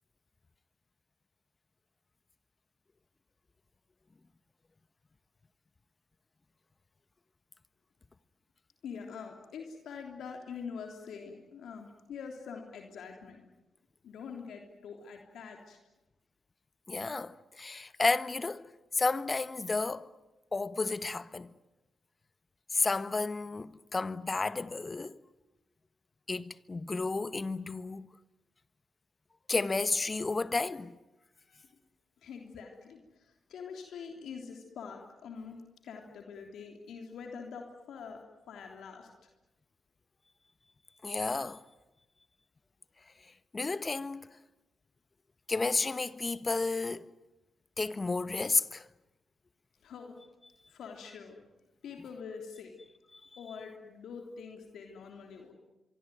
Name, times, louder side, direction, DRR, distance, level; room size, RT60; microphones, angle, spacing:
voice 1, 8.8-13.4 14.0-15.8 31.5-31.7 32.2-39.3 49.8-50.2 50.7-51.4 51.8-52.7 53.4-55.5, left 6 dB, 75° left, 3.3 m, -45 dB
voice 2, 16.9-18.7 18.9-20.1 20.5-21.5 22.7-25.2 26.3-28.1 29.5-30.9 41.0-41.6 43.5-44.3 45.5-47.1 47.8-48.9 53.1-53.2, left 3 dB, 35° left, 1.3 m, -32 dB
24.5 x 24.5 x 9.3 m
hypercardioid pair, 45°, 0 cm